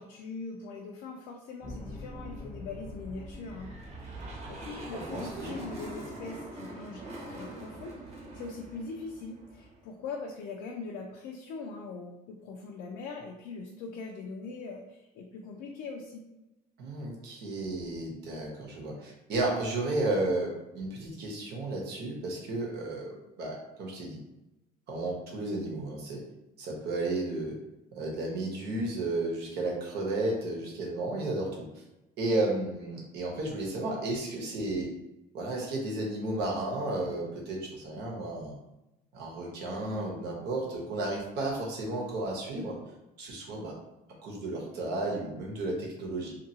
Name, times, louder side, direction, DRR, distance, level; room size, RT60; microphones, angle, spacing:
voice 1, 0.0-3.7 4.0-16.2, left 4 dB, 85° left, 0 dB, 0.4 m, -42 dB
sound 1, 1.6-6.4, left 1 dB, 25° left, 0.6 m, -46 dB
sound 2, 3.4-9.9, right 2 dB, 40° right, 0.9 m, -43 dB
voice 2, 4.9-5.5 16.8-24.2 24.9-26.2 26.6-27.6 27.9-31.5 32.2-34.9 35.3-38.5 39.1-42.8 43.2-43.7 44.2-46.4, right 2 dB, 75° right, -1 dB, 0.9 m, -33 dB
2.8 x 2.5 x 2.7 m, 0.96 s
cardioid pair, 110°, 17 cm